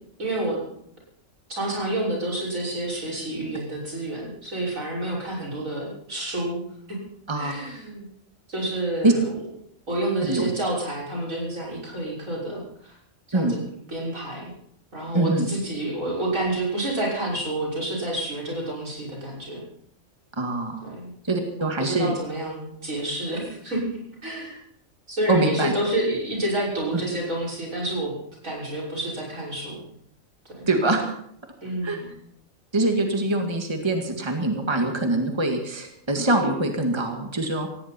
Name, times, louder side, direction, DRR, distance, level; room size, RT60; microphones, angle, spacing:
voice 1, 0.2-0.6 1.5-7.0 7.3-8.1 8.5-9.4 9.9-13.0 13.3-13.6 13.9-14.5 14.9-19.6 20.8-21.1 21.6-24.6 25.1-28.1 28.4-29.8 30.4-30.7 31.6-32.1, right 1 dB, 80° right, -3 dB, 6.6 m, -29 dB
voice 2, 15.1-15.5 20.4-20.8 21.2-22.1 25.3-25.7 30.7-31.0 31.8-32.0 32.7-37.7, right 2 dB, 20° right, 3 dB, 2.0 m, -23 dB
18.0 x 17.0 x 4.4 m, 0.69 s
omnidirectional pair, 1.4 m